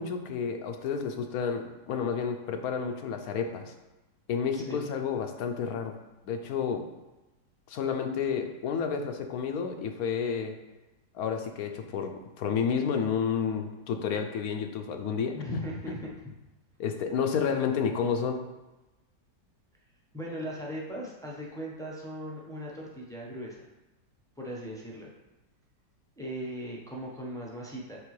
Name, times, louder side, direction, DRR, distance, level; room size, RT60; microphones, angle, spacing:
voice 1, 0.0-3.7 4.3-6.0 6.2-6.9 7.7-10.5 11.1-15.6 16.8-18.4, left 6 dB, 70° left, 5 dB, 1.0 m, -30 dB
voice 2, 4.6-4.9 15.4-16.1 20.1-23.6 24.4-25.1 26.2-28.0, equal, 5° left, -4 dB, 0.5 m, -38 dB
6.7 x 4.4 x 3.2 m, 1.0 s
omnidirectional pair, 1.8 m